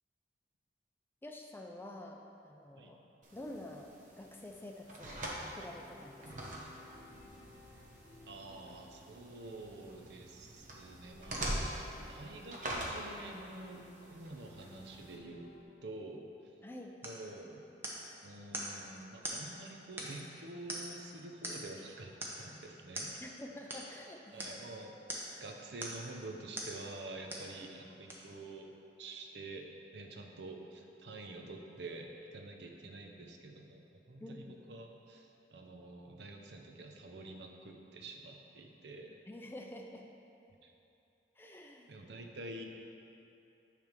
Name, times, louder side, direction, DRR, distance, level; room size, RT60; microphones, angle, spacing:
voice 1, 1.2-2.2 2.4-3.0 3.3-6.6 16.6-17.0 23.2-24.6 34.2-34.5 39.3-40.1 41.4-41.9, left 1 dB, 10° left, 1 dB, 0.4 m, -48 dB
sound 1, 3.2-15.2, right 1 dB, 45° right, 0.9 m, -44 dB
sound 2, 5.1-15.6, left 1 dB, 70° left, 0.8 m, -59 dB
voice 2, 8.3-11.8 12.1-15.5 15.8-16.3 17.0-17.6 18.2-23.2 24.3-25.0 25.4-28.7 29.0-29.7 29.9-39.2 40.6-40.7 41.9-42.6, right 2 dB, 70° right, 3 dB, 0.7 m, -48 dB
sound 3, 17.0-17.2 17.8-18.1 18.5-18.8 19.2-19.4 20.0-20.3 20.7-21.0 21.4-21.8 22.2-22.4 22.9-23.1 23.7-23.9 24.4-24.6 25.1-25.4 25.8-26.1 26.6-26.8 27.3-27.5 28.1-28.2, right 1 dB, 10° right, 0.7 m, -42 dB
9.4 x 3.4 x 5.1 m, 2.8 s
head